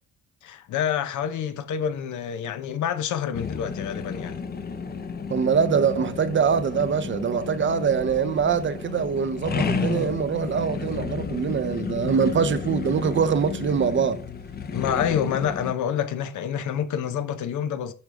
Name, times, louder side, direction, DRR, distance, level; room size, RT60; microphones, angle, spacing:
voice 1, 0.4-4.4 14.7-17.9, left 9 dB, 75° left, 0.8 m, -27 dB
sound 1, 3.3-15.7, left 6 dB, 30° left, 0.7 m, -32 dB
voice 2, 5.3-14.2, right 6 dB, 40° right, 0.7 m, -23 dB
7.1 x 4.9 x 3.4 m
cardioid pair, 90°, 30 cm